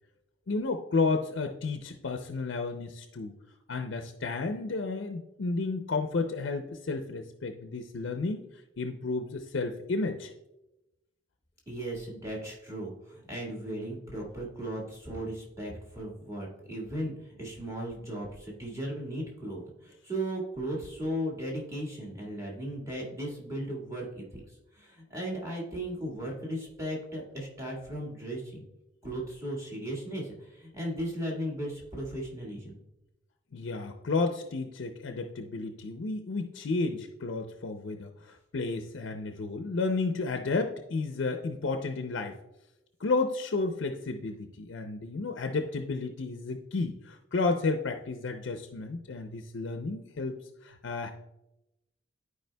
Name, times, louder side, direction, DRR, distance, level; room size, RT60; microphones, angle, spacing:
voice 1, 0.5-3.3 3.7-10.3 33.5-42.4 43.0-51.1, left 3 dB, 65° left, 5 dB, 0.5 m, -32 dB
voice 2, 11.7-24.4 24.7-28.6 29.0-32.7, right 1 dB, 15° right, -3 dB, 1.7 m, -36 dB
12.0 x 4.8 x 2.2 m, 0.91 s
head